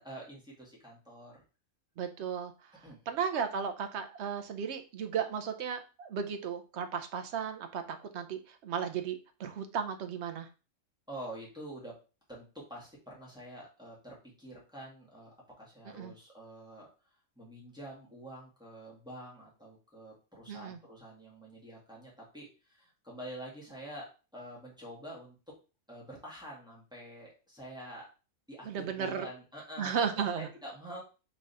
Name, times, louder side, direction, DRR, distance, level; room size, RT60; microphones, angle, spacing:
voice 1, 0.0-1.4 2.7-3.0 11.1-12.0 12.3-16.9 17.3-25.4 25.9-28.1 28.5-31.0, right 1 dB, 5° right, -5 dB, 1.7 m, -47 dB
voice 2, 2.0-10.5 15.9-16.1 20.5-20.8 28.6-29.3 29.8-30.5, right 7 dB, 60° right, 7 dB, 0.8 m, -35 dB
3.7 x 3.3 x 4.0 m, 0.33 s
omnidirectional pair, 1.5 m